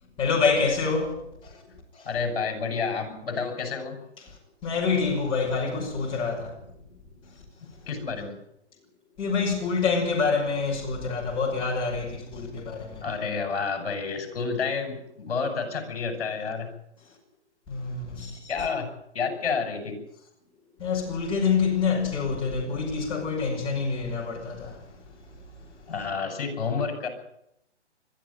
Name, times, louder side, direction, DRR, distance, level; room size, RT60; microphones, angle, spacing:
voice 1, 0.2-1.6 1.9-2.1 4.6-6.5 7.2-7.4 9.2-13.0 17.7-18.5 20.8-25.8, left 5 dB, 15° left, 5.8 m, -27 dB
voice 2, 2.0-4.0 7.9-8.4 13.0-16.7 18.5-20.0 25.9-27.1, left 5 dB, 55° left, 6.5 m, -30 dB
22.0 x 12.5 x 9.4 m
hypercardioid pair, 160°, 35 cm